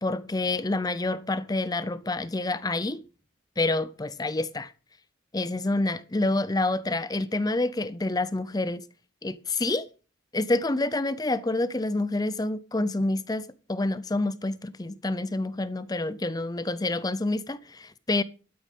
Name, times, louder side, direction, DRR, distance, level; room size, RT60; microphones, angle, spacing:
voice 1, 0.0-3.0 3.6-4.7 5.3-8.8 9.2-9.9 10.3-18.2, left 2 dB, 20° left, 0.5 m, -28 dB
12.5 x 8.7 x 5.3 m
head